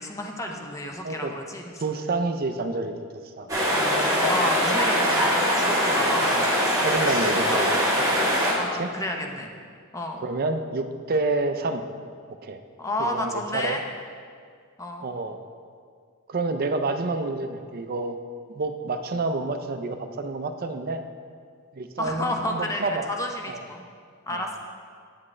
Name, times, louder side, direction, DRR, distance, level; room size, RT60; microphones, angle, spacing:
voice 1, 0.0-1.6 3.7-6.6 7.5-7.6 8.6-9.5 9.9-10.2 12.8-13.8 14.8-15.1 22.0-23.8 24.3-24.6, left 1 dB, 15° left, 2 dB, 0.6 m, -31 dB
voice 2, 1.0-1.3 1.8-2.9 3.2-3.5 6.8-7.8 8.7-8.9 10.2-11.8 12.3-12.6 13.0-13.8 15.0-15.4 16.3-18.2 18.5-21.0 21.7-23.1 23.5-23.6 24.3-24.4, right 3 dB, 45° right, 8 dB, 0.4 m, -28 dB
sound 1, 3.5-8.5, equal, 15° right, 1.4 m, -22 dB
8.3 x 7.4 x 3.2 m, 2.1 s
head